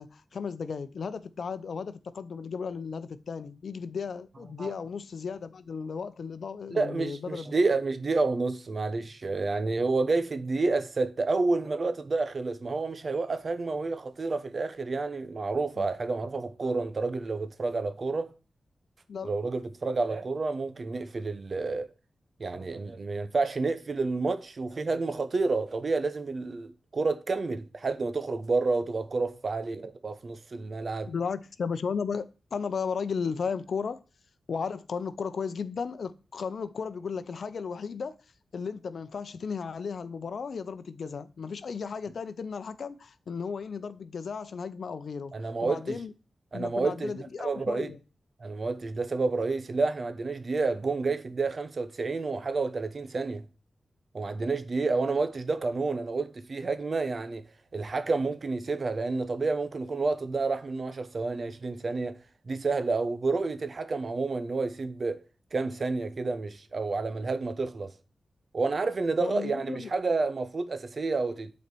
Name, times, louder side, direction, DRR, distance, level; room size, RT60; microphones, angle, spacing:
voice 1, 0.0-7.5 15.8-15.9 19.1-19.4 31.1-34.0 34.5-38.2 38.5-45.3 45.6-46.1 46.5-48.0 69.2-69.9, left 5 dB, 70° left, 0.6 m, -35 dB
voice 2, 6.7-18.3 19.2-21.9 22.4-31.1 45.3-46.0 46.5-47.9 48.4-53.5 54.1-57.5 57.7-62.2 62.5-65.2 65.5-67.9 68.5-71.5, right 3 dB, 50° right, 0.9 m, -29 dB
8.2 x 4.4 x 6.8 m
wide cardioid pair, 85°, 0 cm